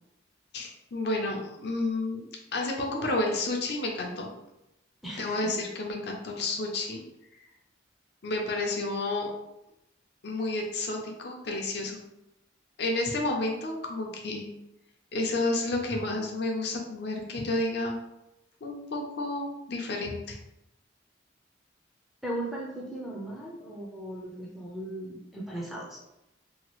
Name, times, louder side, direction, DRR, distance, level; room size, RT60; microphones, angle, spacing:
voice 1, 0.5-2.3 2.5-4.3 5.2-7.0 8.2-9.3 10.2-12.0 12.8-14.5 15.1-18.0 18.6-20.4, left 2 dB, 55° left, 1 dB, 0.5 m, -30 dB
voice 2, 5.0-5.5 22.2-26.0, right 1 dB, ahead, -5 dB, 0.5 m, -37 dB
2.8 x 2.3 x 3.0 m, 0.89 s
head